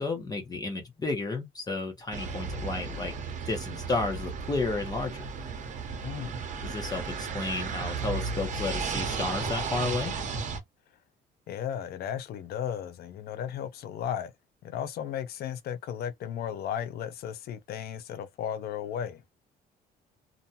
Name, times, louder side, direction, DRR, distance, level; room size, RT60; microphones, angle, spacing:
voice 1, 0.0-3.1 3.5-5.2 6.6-10.1, left 3 dB, 25° left, 0.9 m, -32 dB
sound 1, 2.1-10.6, right 5 dB, 45° right, 0.8 m, -34 dB
voice 2, 6.0-6.4 11.5-14.3 14.6-19.2, left 9 dB, 65° left, 0.6 m, -35 dB
2.5 x 2.2 x 2.7 m
cardioid pair, 110°, 17 cm